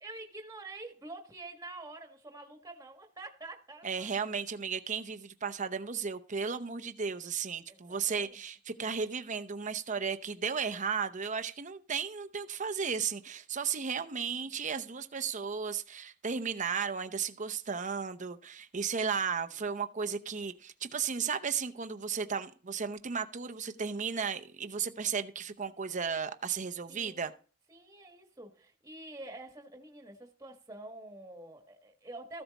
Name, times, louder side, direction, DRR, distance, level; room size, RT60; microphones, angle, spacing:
voice 1, 0.0-4.3 7.7-8.4 14.2-14.5 19.1-19.2 26.9-27.3 27.7-32.4, right 2 dB, 15° right, 1.5 m, -47 dB
voice 2, 3.8-27.3, right 6 dB, 40° right, 0.8 m, -34 dB
14.5 x 8.0 x 4.1 m
head